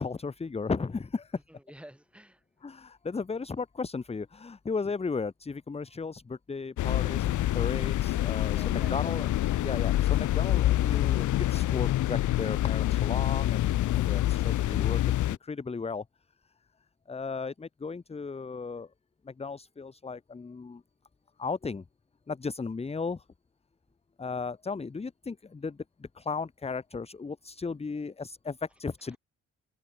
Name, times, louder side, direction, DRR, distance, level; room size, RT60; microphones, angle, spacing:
voice 1, 0.0-1.4 2.6-9.3 9.6-16.0 17.1-18.9 19.2-20.8 21.4-21.8 22.3-23.2 24.2-29.2, left 4 dB, 20° left, 1.0 m, -35 dB
voice 2, 1.5-2.4 8.5-9.4, right 1 dB, 5° right, 6.3 m, -50 dB
sound 1, 6.8-15.4, left 14 dB, 75° left, 1.3 m, -26 dB
open air
cardioid pair, 90°, 30 cm